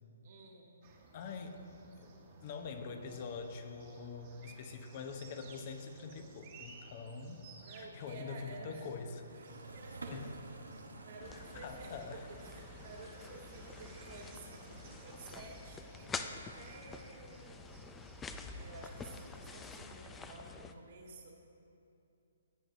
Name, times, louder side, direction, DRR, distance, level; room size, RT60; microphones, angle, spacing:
voice 1, 0.2-0.8 7.6-8.9 9.3-10.4 11.0-17.7 18.5-21.4, right 3 dB, 55° right, 0 dB, 2.0 m, -52 dB
sound 1, 0.8-19.8, right 3 dB, 40° right, 1.4 m, -58 dB
voice 2, 1.1-1.6 2.0-2.1 2.4-9.2 10.1-10.3 11.3-12.2, left 5 dB, 40° left, 5 dB, 0.8 m, -44 dB
sound 2, 9.0-16.0, right 2 dB, 85° right, 1.0 m, -52 dB
sound 3, 11.2-20.7, left 4 dB, 10° left, 0.4 m, -48 dB
16.0 x 7.8 x 2.7 m, 2.7 s
hypercardioid pair, 140°, 0 cm